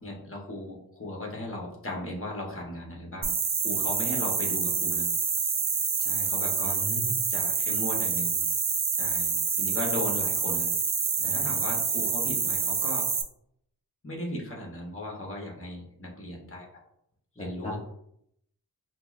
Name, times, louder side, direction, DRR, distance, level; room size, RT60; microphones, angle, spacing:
voice 1, 0.0-3.3 3.6-5.0 6.0-6.8 7.3-8.4 9.0-10.7 11.2-13.1 14.0-16.7 17.4-17.8, left 1 dB, 35° left, -1 dB, 1.0 m, -37 dB
sound 1, 3.2-13.2, right 5 dB, 45° right, 0.5 m, -27 dB
voice 2, 6.7-7.2 11.2-11.5 17.4-17.7, left 1 dB, 15° left, -3 dB, 0.6 m, -38 dB
5.5 x 2.0 x 2.4 m, 0.74 s
wide cardioid pair, 70°, 39 cm